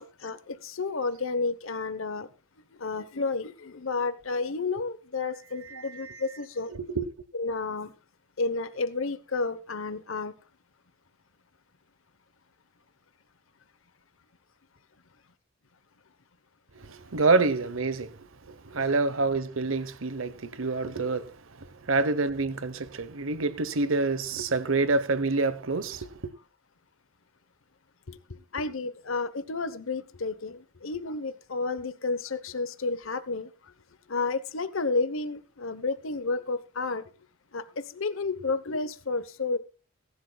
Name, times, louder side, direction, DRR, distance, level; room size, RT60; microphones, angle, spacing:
voice 1, 0.0-2.3 2.8-6.7 7.3-7.9 8.4-10.3 28.1-33.7 34.1-37.0 37.5-39.6, left 3 dB, 75° left, 1.0 m, -31 dB
voice 2, 5.7-6.2 6.9-7.1 16.8-18.2 18.5-26.1, right 3 dB, 75° right, 1.0 m, -27 dB
22.0 x 11.5 x 2.3 m
head